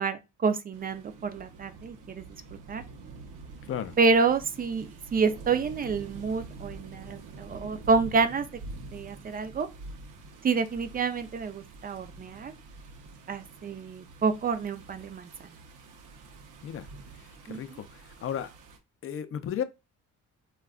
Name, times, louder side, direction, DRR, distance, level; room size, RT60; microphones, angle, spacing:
voice 1, 0.0-2.3 2.7-2.8 4.0-8.5 8.9-9.7 10.4-12.5 13.3-15.5 17.5-17.8, right 4 dB, 30° right, 0.4 m, -28 dB
sound 1, 0.7-18.8, right 3 dB, 90° right, 0.6 m, -46 dB
voice 2, 17.5-17.9 18.2-18.5 19.0-19.6, left 9 dB, 45° left, 0.4 m, -33 dB
2.3 x 2.2 x 3.5 m
cardioid pair, 90°, 30 cm